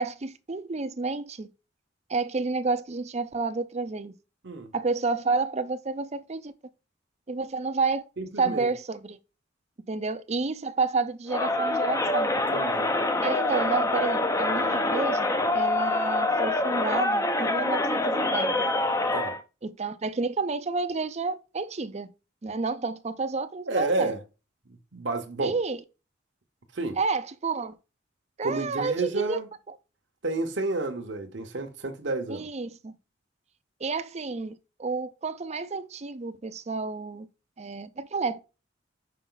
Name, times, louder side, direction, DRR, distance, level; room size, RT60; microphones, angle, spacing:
voice 1, 0.0-1.5 2.1-4.1 4.7-6.5 7.3-8.1 8.4-9.2 9.9-12.3 13.2-18.6 19.6-22.1 22.4-24.1 25.4-25.8 27.0-27.7 28.4-29.4 32.3-32.9 33.8-37.3 37.6-38.4, right 4 dB, 35° right, 0.5 m, -30 dB
voice 2, 8.2-8.7 12.5-12.9 19.1-19.3 23.6-24.2 24.9-25.5 26.7-27.0 28.4-29.5 30.2-32.5, right 2 dB, 60° right, 1.0 m, -30 dB
Crowd, 11.3-19.4, left 2 dB, 15° left, 0.6 m, -25 dB
5.7 x 5.0 x 3.9 m
head